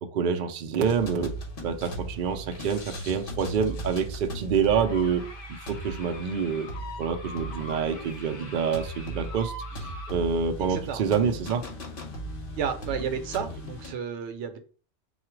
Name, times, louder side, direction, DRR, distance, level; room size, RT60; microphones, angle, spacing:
voice 1, 0.0-1.3 1.6-6.7 7.0-11.7, right 6 dB, 60° right, 7 dB, 0.6 m, -27 dB
sound 1, 0.8-13.9, right 1 dB, 50° left, 1.0 m, -38 dB
Speech, 2.5-2.6 7.8-8.5 9.7-10.0, left 1 dB, 15° left, 2.3 m, -48 dB
voice 2, 10.7-11.0 12.6-14.6, right 7 dB, 80° right, 8 dB, 0.9 m, -32 dB
3.7 x 2.4 x 4.5 m, 0.40 s
omnidirectional pair, 1.2 m